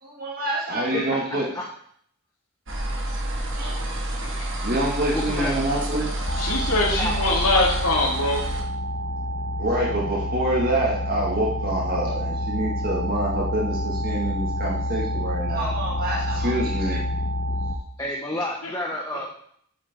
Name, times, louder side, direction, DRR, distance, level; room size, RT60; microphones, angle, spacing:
voice 1, 0.0-1.5 3.5-3.8 4.6-6.1 9.6-17.0, right 1 dB, 40° right, -4 dB, 1.9 m, -26 dB
voice 2, 0.9-1.6 5.1-5.5 6.9-7.5 18.0-19.2, left 1 dB, 15° left, -2 dB, 1.1 m, -30 dB
sound 1, 2.7-8.6, right 1 dB, 55° right, 1.8 m, -29 dB
voice 3, 4.2-4.6 6.4-8.5 18.3-18.7, left 2 dB, 85° left, -6 dB, 2.1 m, -24 dB
sound 2, 6.3-17.8, left 1 dB, 40° left, 0.8 m, -28 dB
8.9 x 8.7 x 3.7 m, 0.63 s
head